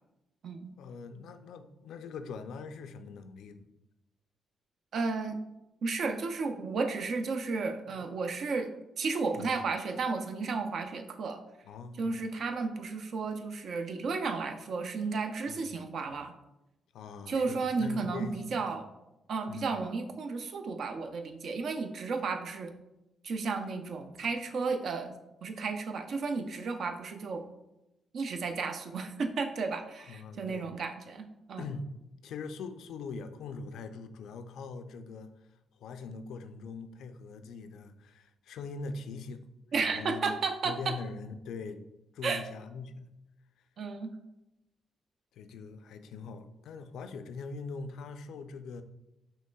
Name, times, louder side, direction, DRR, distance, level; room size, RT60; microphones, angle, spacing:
voice 1, 0.8-3.7 7.9-8.0 9.3-9.6 11.7-12.1 15.5-15.6 16.9-18.8 19.5-19.7 30.1-30.6 31.6-31.9 32.2-35.3 35.8-39.4 39.8-40.4 40.6-41.8 42.1-43.1 45.3-48.8, left 4 dB, 80° left, 9 dB, 0.3 m, -42 dB
voice 2, 4.9-5.4 5.8-8.7 9.0-11.4 12.0-16.3 17.3-18.9 19.3-22.7 23.2-25.1 25.4-27.4 28.1-31.6 39.7-41.0 42.2-42.4 43.8-44.1, right 4 dB, 65° right, 7 dB, 0.5 m, -33 dB
5.6 x 3.1 x 2.2 m, 0.93 s
cardioid pair, 85°, 0 cm